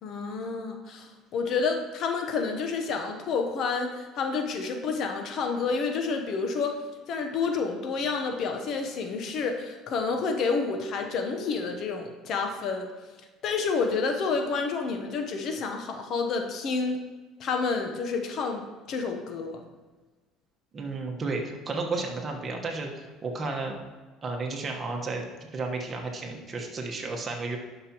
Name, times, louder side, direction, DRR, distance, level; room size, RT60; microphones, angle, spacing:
voice 1, 0.0-6.8 7.1-12.9 13.4-17.0 17.4-19.6, left 4 dB, 55° left, 4 dB, 0.9 m, -29 dB
voice 2, 20.7-23.8 24.2-25.2 25.5-27.6, right 3 dB, 30° right, 1 dB, 1.2 m, -32 dB
11.0 x 5.8 x 3.0 m, 1.3 s
cardioid pair, 115°, 0 cm